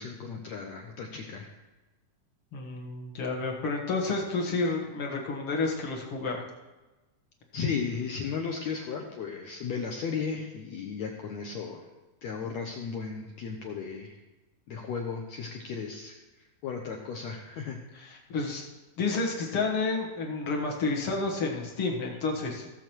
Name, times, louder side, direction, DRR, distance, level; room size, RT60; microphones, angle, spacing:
voice 1, 0.0-1.5 7.5-11.8 12.2-14.2 14.7-16.1 16.4-17.8, left 5 dB, 80° left, 1 dB, 1.6 m, -35 dB
voice 2, 2.5-6.5 17.9-18.7 19.0-22.7, left 3 dB, 55° left, 0 dB, 1.6 m, -30 dB
16.5 x 7.0 x 4.5 m, 1.1 s
omnidirectional pair, 4.3 m